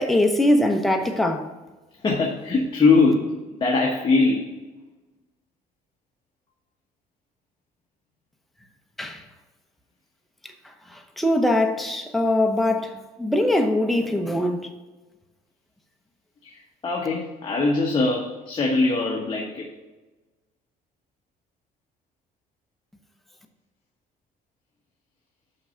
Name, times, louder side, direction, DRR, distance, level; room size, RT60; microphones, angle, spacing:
voice 1, 0.0-1.5 9.0-9.2 10.4-14.7, left 1 dB, ahead, 0.8 m, -22 dB
voice 2, 2.0-4.5 16.4-19.7, left 3 dB, 30° left, 1.3 m, -22 dB
6.3 x 5.9 x 5.6 m
cardioid pair, 110°, 17 cm